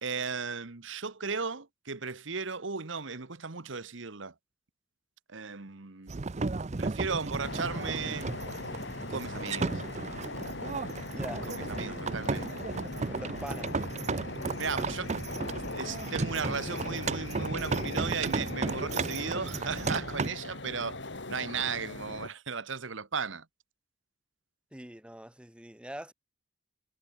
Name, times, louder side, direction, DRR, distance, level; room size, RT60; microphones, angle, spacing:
voice 1, 0.0-4.3 5.3-6.1 6.8-8.3 9.1-9.8 11.5-12.6 14.6-15.2 15.5-21.0 21.3-23.4, right 5 dB, 70° right, 1.4 m, -36 dB
sound 1, 6.1-20.3, right 3 dB, 35° right, 0.6 m, -34 dB
sound 2, 7.4-22.3, left 2 dB, 65° left, 3.7 m, -40 dB
voice 2, 11.1-12.0 13.1-13.7 24.7-26.1, right 1 dB, 5° right, 1.5 m, -43 dB
head